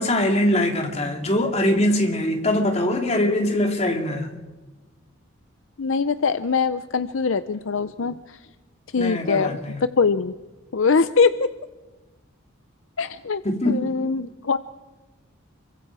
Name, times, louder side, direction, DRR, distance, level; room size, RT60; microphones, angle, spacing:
voice 1, 0.0-4.3 9.0-9.8 13.4-13.9, left 1 dB, 30° left, 3 dB, 2.9 m, -22 dB
voice 2, 5.8-8.4 8.9-9.6 10.0-10.3 10.7-11.5 13.0-14.6, left 5 dB, 65° left, 13 dB, 0.6 m, -22 dB
29.5 x 23.5 x 4.8 m, 1.2 s
head